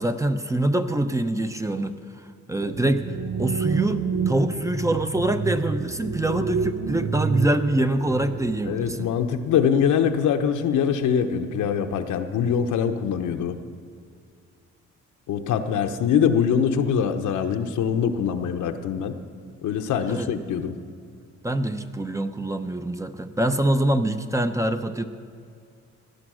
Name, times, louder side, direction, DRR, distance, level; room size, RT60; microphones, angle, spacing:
voice 1, 0.0-2.0 2.5-9.1 20.1-20.3 21.4-25.1, right 1 dB, 10° right, 8 dB, 0.8 m, -25 dB
sound 1, 2.6-9.0, right 5 dB, 65° right, 0.8 m, -29 dB
voice 2, 8.7-13.6 15.3-19.2 19.6-20.8, left 7 dB, 80° left, 6 dB, 1.0 m, -23 dB
17.5 x 9.9 x 6.4 m, 2.3 s
cardioid pair, 90°, 30 cm